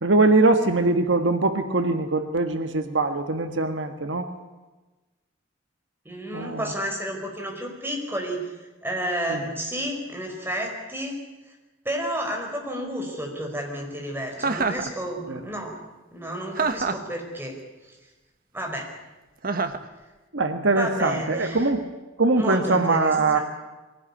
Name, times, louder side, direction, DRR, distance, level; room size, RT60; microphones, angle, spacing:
voice 1, 0.0-4.3 6.3-6.7 9.3-9.4 15.3-15.4 20.3-21.8 22.2-23.4, right 3 dB, 70° right, 7 dB, 1.6 m, -22 dB
voice 2, 6.0-11.2 11.5-11.6 11.8-15.7 16.1-17.6 18.5-18.9 20.7-21.7 22.4-23.4, equal, 10° right, 1 dB, 5.0 m, -31 dB
Chuckle chortle, 14.4-14.9 16.5-17.1 19.4-19.9, right 4 dB, 50° right, 1.4 m, -26 dB
23.0 x 18.0 x 9.9 m, 1.2 s
head